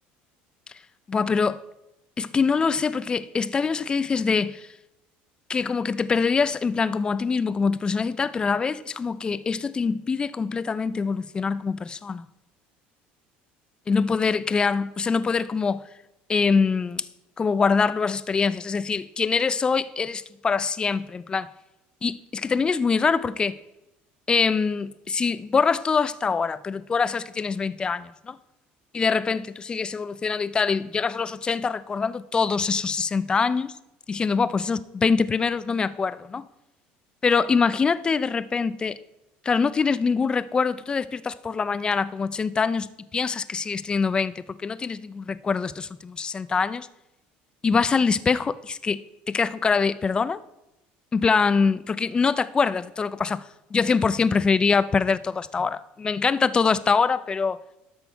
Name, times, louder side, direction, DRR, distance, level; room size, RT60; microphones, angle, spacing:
voice 1, 1.1-1.6 2.2-4.7 5.5-12.3 13.9-15.8 16.3-17.1 17.4-21.5 22.0-23.6 24.3-28.4 28.9-33.8 34.1-36.5 37.2-39.0 39.4-46.9 47.6-50.4 51.1-57.6, left 5 dB, 20° left, 0.4 m, -24 dB
12.5 x 6.3 x 4.6 m
cardioid pair, 120°, 4 cm